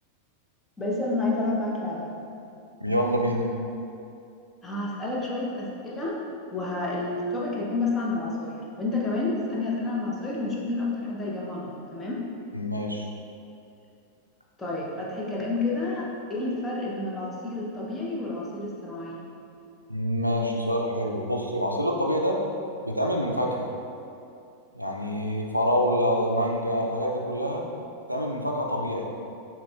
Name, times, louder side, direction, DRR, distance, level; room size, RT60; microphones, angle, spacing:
voice 1, 0.8-2.1 4.6-6.2 6.5-12.2 14.6-19.2, left 2 dB, 15° left, -4 dB, 0.8 m, -29 dB
voice 2, 2.8-3.5 12.5-13.0 19.9-22.4 22.9-23.7 24.7-27.7 28.1-29.1, equal, 90° right, 0 dB, 0.4 m, -26 dB
6.2 x 3.2 x 2.3 m, 2.6 s
figure-of-eight pair, 90°, 0 cm